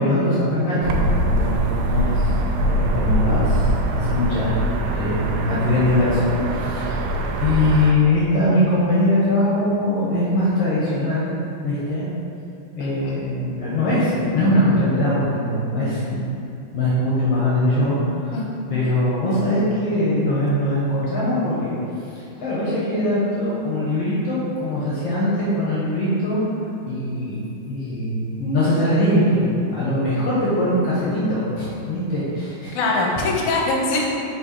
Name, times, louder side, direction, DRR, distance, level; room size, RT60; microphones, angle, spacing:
voice 1, 0.0-2.3 2.6-3.6 3.9-4.6 4.9-7.1 7.4-11.3 11.6-12.1 12.8-16.4 16.7-18.4 18.7-21.7 22.4-26.4 26.9-27.4 27.7-32.8, left 1 dB, 60° left, -8 dB, 1.9 m, -21 dB
sound 1, 0.8-7.9, right 1 dB, 90° right, 2.2 m, -23 dB
voice 2, 12.8-13.1 18.3-18.5 32.7-34.0, left 3 dB, 75° left, -2 dB, 2.1 m, -23 dB
5.3 x 4.5 x 4.3 m, 2.6 s
omnidirectional pair, 3.7 m